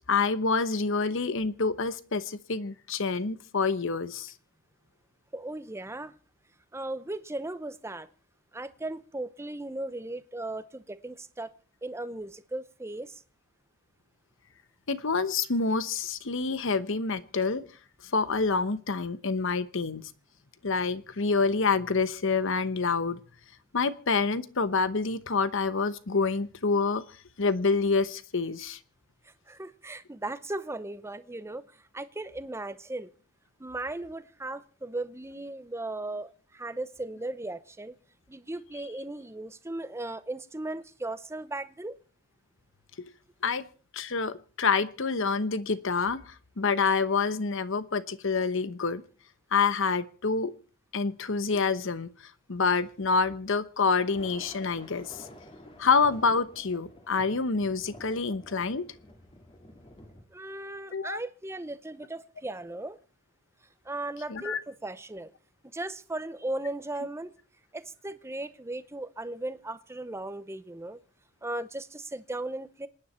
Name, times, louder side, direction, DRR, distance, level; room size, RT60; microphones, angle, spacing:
voice 1, 0.1-4.3 14.9-17.6 18.1-20.1 20.6-23.2 23.7-27.0 27.4-28.8 43.4-43.6 43.9-49.0 49.5-50.5 50.9-52.1 52.5-55.2 55.8-58.9 60.9-61.2 64.3-64.6, left 4 dB, 65° left, 1.0 m, -27 dB
voice 2, 5.3-6.1 6.7-8.1 8.5-11.5 11.8-13.2 29.2-33.1 33.6-37.9 38.3-42.0 60.3-63.0 63.8-65.3 65.7-67.3 67.7-71.0 71.4-72.9, right 2 dB, 15° right, 0.7 m, -37 dB
Thunder, 54.0-60.2, left 1 dB, 25° left, 2.3 m, -50 dB
27.0 x 10.0 x 4.3 m
head